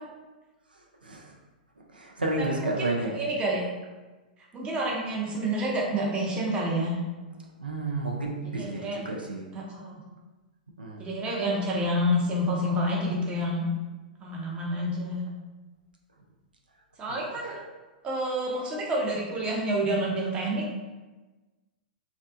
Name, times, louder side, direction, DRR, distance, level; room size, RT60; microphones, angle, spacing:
voice 1, 1.0-1.3 1.9-3.2 7.6-9.5 10.8-11.1 17.1-17.2, right 2 dB, 90° right, -1 dB, 0.4 m, -31 dB
voice 2, 2.4-3.6 4.5-6.9 8.4-9.0 9.5-9.9 11.0-13.7 14.2-15.2 17.0-17.6 18.0-20.6, equal, 25° right, -3 dB, 0.6 m, -28 dB
2.5 x 2.2 x 2.4 m, 1.2 s
figure-of-eight pair, 110°, 5 cm